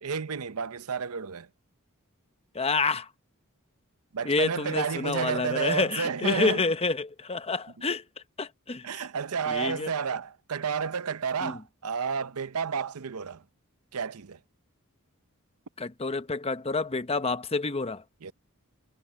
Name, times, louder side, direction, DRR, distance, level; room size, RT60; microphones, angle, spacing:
voice 1, 0.0-1.5 4.1-6.6 8.8-13.4 13.9-14.4 18.2-18.3, right 6 dB, 80° right, 0.7 m, -31 dB
voice 2, 2.5-3.1 4.2-8.0 8.4-9.0 9.5-9.9 11.4-11.6 15.8-18.0, left 3 dB, 25° left, 0.9 m, -28 dB
head